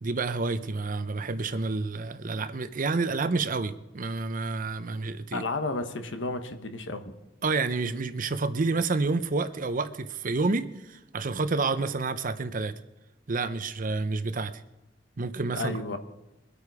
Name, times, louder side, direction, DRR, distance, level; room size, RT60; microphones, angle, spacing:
voice 1, 0.0-5.4 7.4-12.7 13.3-14.5 15.2-15.8, right 3 dB, 45° right, 12 dB, 0.7 m, -29 dB
voice 2, 5.3-7.1 15.5-16.0, left 3 dB, 90° left, 8 dB, 1.3 m, -32 dB
22.5 x 8.4 x 4.9 m, 0.98 s
head